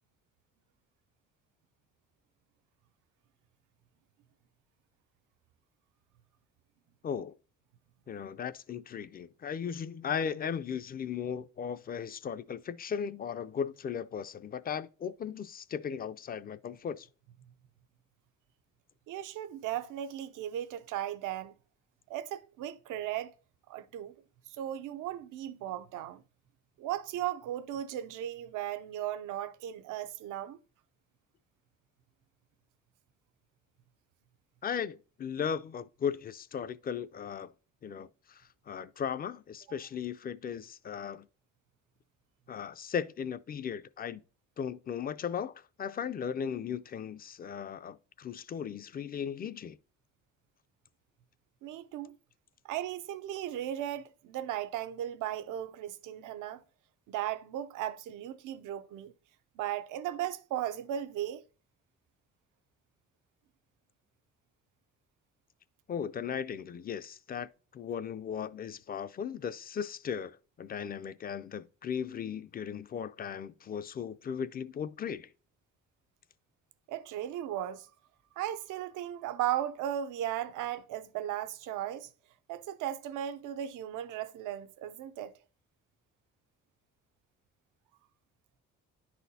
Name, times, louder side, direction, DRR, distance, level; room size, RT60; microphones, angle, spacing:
voice 1, 7.0-7.3 8.1-17.1 34.6-37.5 37.8-41.3 42.5-44.2 44.6-49.8 65.9-75.3, left 7 dB, 30° left, 0.4 m, -37 dB
voice 2, 19.1-21.5 22.1-23.3 23.7-24.2 24.5-26.2 26.8-30.6 51.6-52.1 52.6-56.6 57.1-59.1 59.6-61.4 76.9-77.9 78.4-82.1 82.5-85.3, right 11 dB, 90° right, 0.6 m, -36 dB
10.0 x 4.2 x 2.7 m
cardioid pair, 90°, 30 cm